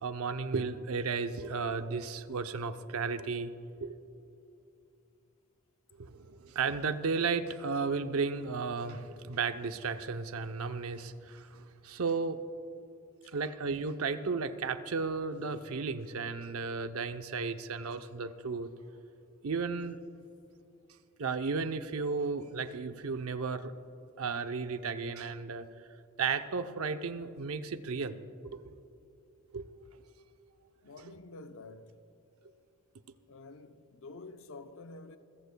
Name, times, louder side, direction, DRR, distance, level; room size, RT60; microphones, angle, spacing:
voice 1, 0.0-3.5 3.8-4.0 6.0-12.4 13.3-18.7 19.4-20.0 21.2-23.7 24.2-25.7 26.2-28.2 28.4-28.7 29.5-29.6, right 4 dB, 75° right, 0.7 m, -34 dB
voice 2, 30.8-32.0 33.3-35.2, left 3 dB, 65° left, 0.7 m, -49 dB
27.0 x 15.0 x 2.3 m
head